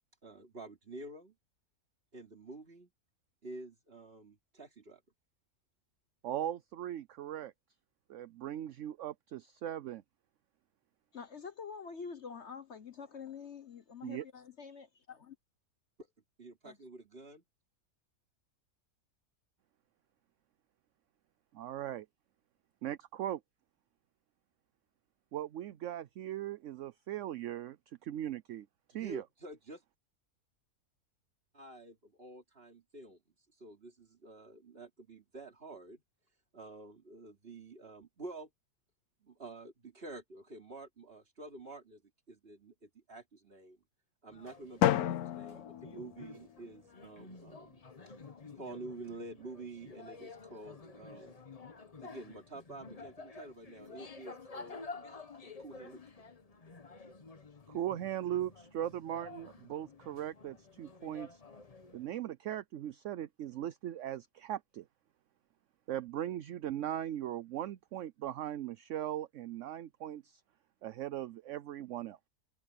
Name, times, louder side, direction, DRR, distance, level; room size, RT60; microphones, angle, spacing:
voice 1, 0.2-1.3 2.1-2.9 3.4-5.0 16.4-17.4 28.9-29.8 31.5-33.2 33.6-36.0 36.5-38.5 39.2-42.0 42.3-43.8 44.2-47.8 48.5-51.4 52.0-56.0, right 2 dB, 40° right, 3.1 m, -49 dB
voice 2, 6.2-7.5 8.1-10.0 14.0-14.2 21.5-22.1 22.8-23.4 25.3-27.8 28.0-29.2 57.7-61.4 61.9-64.8 65.9-70.4 70.8-72.3, right 11 dB, 65° right, 0.9 m, -39 dB
voice 3, 11.1-15.3 16.6-16.8, left 6 dB, 50° left, 1.2 m, -46 dB
sound 1, 44.3-62.1, left 4 dB, 30° left, 1.0 m, -51 dB
Drum, 44.8-46.8, left 12 dB, 75° left, 1.1 m, -32 dB
omnidirectional pair, 1.6 m